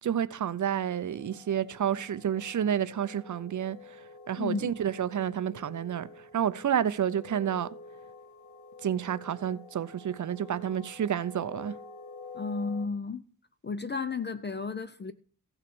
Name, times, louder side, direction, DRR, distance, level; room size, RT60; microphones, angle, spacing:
voice 1, 0.0-7.7 8.8-11.8, right 9 dB, 60° right, 0.6 m, -30 dB
sound 1, 0.9-12.9, left 4 dB, 60° left, 2.0 m, -48 dB
voice 2, 4.4-4.7 12.3-13.2 13.6-15.1, left 4 dB, 30° left, 0.5 m, -33 dB
15.0 x 5.9 x 6.2 m
wide cardioid pair, 175°, 34 cm